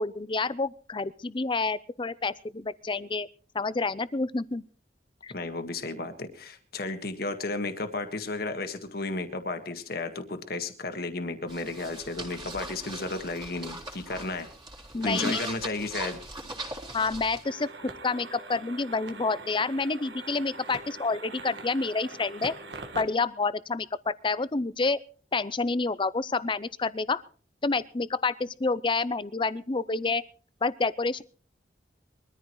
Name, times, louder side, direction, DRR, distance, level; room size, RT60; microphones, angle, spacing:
voice 1, 0.0-3.3 3.5-4.6 5.2-5.3 14.9-15.4 16.9-17.7 18.0-22.5 22.9-25.0 25.3-27.2 27.6-30.2 30.6-31.2, left 3 dB, 30° left, 16 dB, 0.6 m, -28 dB
voice 2, 5.3-14.5 15.0-16.2, left 2 dB, 60° left, 7 dB, 1.7 m, -33 dB
sound 1, 11.5-17.4, right 2 dB, 25° right, 3.8 m, -40 dB
sound 2, 17.4-23.0, right 3 dB, 85° right, 1.6 m, -43 dB
22.5 x 14.0 x 3.1 m, 0.40 s
head